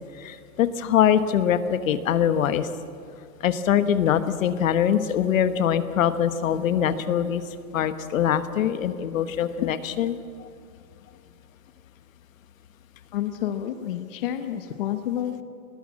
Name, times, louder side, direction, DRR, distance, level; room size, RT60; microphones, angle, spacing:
voice 1, 0.2-2.7 3.4-7.4 7.7-10.2, left 9 dB, 60° left, 11 dB, 1.1 m, -23 dB
voice 2, 13.1-15.4, left 11 dB, 40° left, 8 dB, 0.8 m, -29 dB
20.0 x 19.0 x 7.5 m, 2.4 s
supercardioid pair, 175°, 45 cm